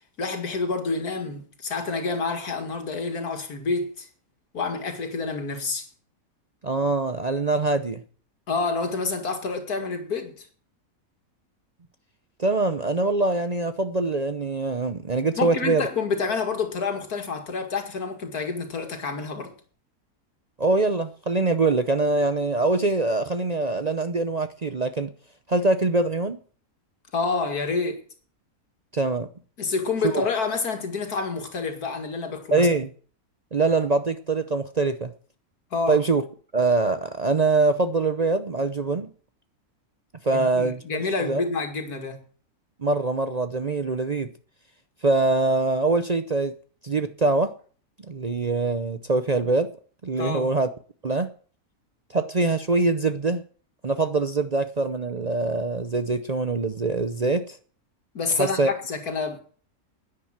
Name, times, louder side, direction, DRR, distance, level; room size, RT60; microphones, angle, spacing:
voice 1, 0.2-4.1 4.5-5.9 8.5-10.5 15.4-19.5 27.1-28.0 29.6-32.7 35.7-36.0 40.3-42.2 50.2-50.5 58.1-59.4, left 4 dB, 90° left, 2.6 m, -28 dB
voice 2, 6.6-8.0 12.4-15.8 20.6-25.1 25.5-26.4 28.9-29.3 30.0-30.1 32.5-32.9 33.5-35.1 35.9-36.2 36.5-39.1 40.2-41.4 42.8-44.3 45.0-46.5 46.8-47.5 48.1-49.7 50.0-50.7 51.0-51.3 52.1-53.4 53.8-57.6 58.3-58.7, right 3 dB, 40° right, 0.6 m, -23 dB
10.5 x 9.9 x 7.4 m
omnidirectional pair, 1.6 m